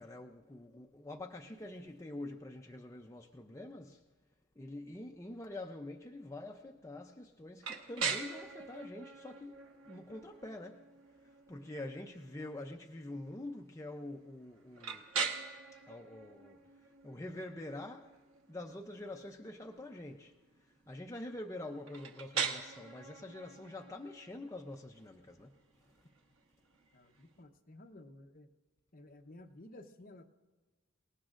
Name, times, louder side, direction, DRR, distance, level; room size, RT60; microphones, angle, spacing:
voice 1, 0.0-4.0 4.6-10.9 11.2-15.0 15.7-16.6 17.0-18.2 18.5-20.3 20.6-25.6, left 1 dB, 15° left, 0.5 m, -46 dB
sound 1, 7.6-27.4, right 5 dB, 90° right, 1.2 m, -43 dB
voice 2, 26.9-28.5 28.9-30.3, left 1 dB, 40° left, 0.8 m, -54 dB
29.5 x 18.5 x 2.5 m
head